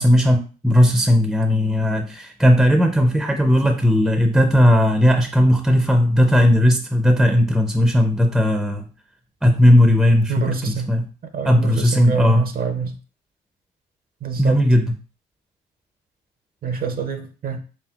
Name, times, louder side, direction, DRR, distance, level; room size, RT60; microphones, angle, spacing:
voice 1, 0.0-8.9 9.4-11.1 11.4-12.5 14.4-14.9, equal, ahead, 5 dB, 0.5 m, -16 dB
voice 2, 10.3-10.9 11.3-13.0 14.2-14.6 16.6-17.6, right 5 dB, 50° right, 7 dB, 0.6 m, -26 dB
4.4 x 3.3 x 2.3 m, 0.36 s
cardioid pair, 90°, 20 cm